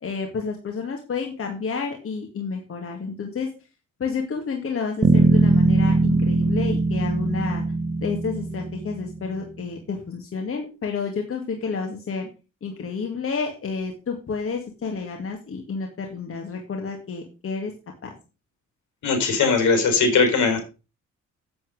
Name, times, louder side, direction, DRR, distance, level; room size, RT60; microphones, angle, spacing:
voice 1, 0.0-3.5 4.0-7.6 8.0-12.3 12.6-17.7 18.0-18.1, left 5 dB, 45° left, 2 dB, 2.2 m, -30 dB
Bass guitar, 5.0-9.4, right 3 dB, 20° right, 1.2 m, -21 dB
voice 2, 19.0-20.6, left 4 dB, 70° left, 6 dB, 4.5 m, -19 dB
8.3 x 7.7 x 5.1 m, 0.31 s
cardioid pair, 90°, 30 cm